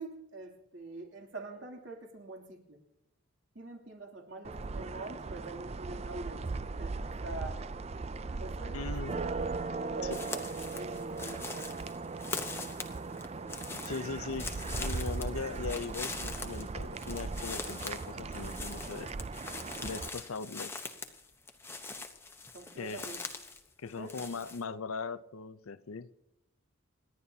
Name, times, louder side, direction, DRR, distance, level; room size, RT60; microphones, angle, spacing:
voice 1, 0.0-2.8 3.5-6.4 6.8-7.6 8.4-9.0 9.7-10.4 10.7-11.8 22.5-23.2 24.0-24.1, right 3 dB, 60° right, 3.0 m, -44 dB
sound 1, 4.4-20.1, right 3 dB, 30° right, 0.4 m, -38 dB
voice 2, 8.7-9.2 10.0-10.2 13.7-19.1 19.8-20.8 22.8-23.1 23.8-26.1, left 4 dB, 85° left, 0.6 m, -39 dB
sound 2, 10.1-23.6 23.9-24.6, left 3 dB, 10° left, 0.9 m, -42 dB
28.0 x 11.0 x 2.8 m
head